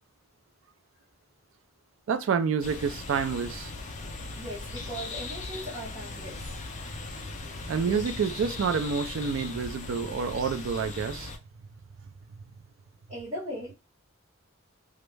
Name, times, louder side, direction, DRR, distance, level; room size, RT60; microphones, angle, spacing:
voice 1, 2.1-3.7 7.7-11.3, right 6 dB, 60° right, 0.3 m, -28 dB
sound 1, 2.6-11.4, left 3 dB, 35° left, 0.4 m, -39 dB
voice 2, 4.4-6.6 13.1-13.8, equal, 15° right, 1.0 m, -38 dB
2.3 x 2.0 x 3.1 m
head